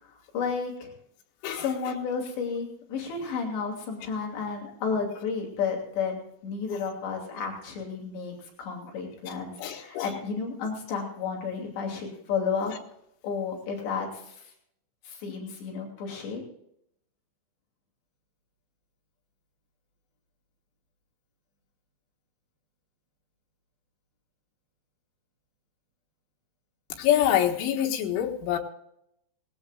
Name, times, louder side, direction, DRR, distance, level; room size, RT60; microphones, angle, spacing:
voice 1, 0.0-0.9 1.5-12.7 13.2-14.5 15.0-16.4, left 5 dB, 70° left, 0 dB, 4.9 m, -32 dB
voice 2, 9.6-10.1 27.0-28.6, left 11 dB, 90° left, 2 dB, 4.0 m, -25 dB
19.5 x 17.5 x 2.5 m, 0.75 s
omnidirectional pair, 5.3 m